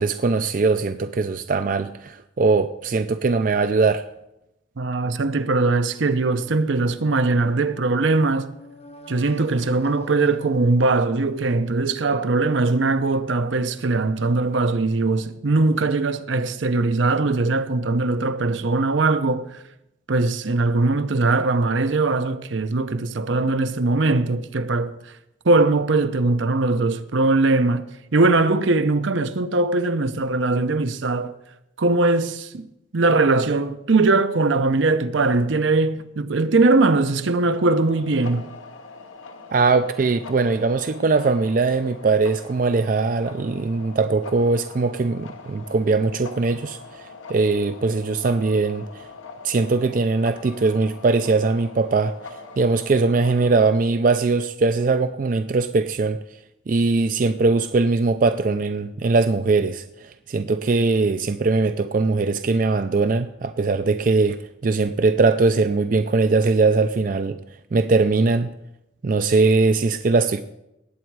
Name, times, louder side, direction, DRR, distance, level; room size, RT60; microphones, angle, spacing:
voice 1, 0.0-4.0 39.5-49.0 49.4-56.2 56.7-67.4 67.7-68.5 69.0-70.4, right 3 dB, 40° right, 0.4 m, -21 dB
voice 2, 4.8-8.5 9.1-19.6 20.1-24.9 25.4-27.9 28.1-31.3 31.8-32.7 32.9-38.5, right 3 dB, 70° right, 0.7 m, -20 dB
sound 1, 6.1-11.9, equal, 30° left, 0.8 m, -45 dB
sound 2, 37.5-53.8, left 4 dB, 85° left, 1.1 m, -42 dB
18.5 x 8.2 x 4.7 m
head